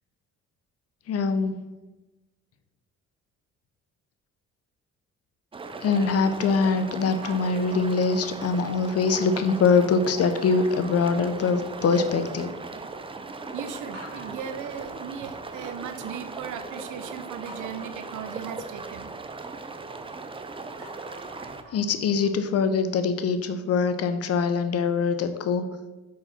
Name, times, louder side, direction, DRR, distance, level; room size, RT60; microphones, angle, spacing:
voice 1, 1.1-1.5 5.8-12.5 21.7-25.6, left 5 dB, 55° left, 9 dB, 0.7 m, -23 dB
sound 1, 5.5-21.6, right 3 dB, 20° right, 0.5 m, -38 dB
sound 2, 7.2-8.7 9.1-9.6 10.5-12.0 12.3-12.9 13.3-13.4 13.9-16.1 17.5-20.3 20.6-23.6, right 2 dB, 60° right, 2.2 m, -49 dB
voice 2, 13.5-19.1, right 8 dB, 80° right, 9 dB, 0.7 m, -37 dB
4.8 x 4.1 x 5.6 m, 1.1 s
cardioid pair, 90°, 30 cm